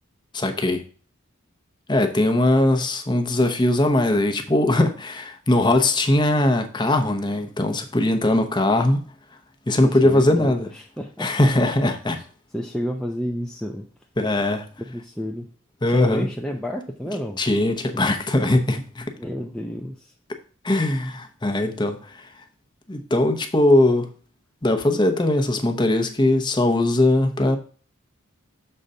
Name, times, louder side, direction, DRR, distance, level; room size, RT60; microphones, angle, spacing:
voice 1, 0.3-0.8 1.9-9.0 9.7-10.7 11.2-12.2 14.2-14.7 15.8-16.3 17.4-19.1 20.6-22.3 22.9-24.1 24.6-27.6, left 1 dB, 20° left, 0.8 m, -20 dB
voice 2, 9.8-11.5 12.1-12.2 12.5-13.9 14.8-15.5 15.9-17.4 19.2-20.1, equal, 5° left, 0.5 m, -31 dB
6.7 x 3.9 x 5.4 m
head